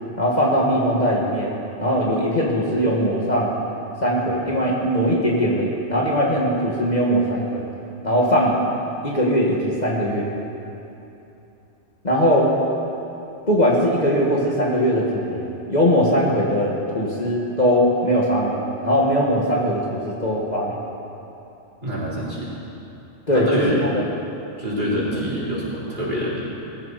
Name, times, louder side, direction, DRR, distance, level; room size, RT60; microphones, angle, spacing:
voice 1, 0.2-3.5 4.0-7.6 8.0-8.6 9.0-10.3 12.0-12.5 13.5-20.8 23.3-23.9, equal, 35° left, -4 dB, 1.9 m, -20 dB
voice 2, 21.8-22.5 23.3-23.8 24.6-26.5, equal, 40° right, -8 dB, 4.6 m, -26 dB
21.0 x 15.0 x 4.2 m, 2.9 s
omnidirectional pair, 1.2 m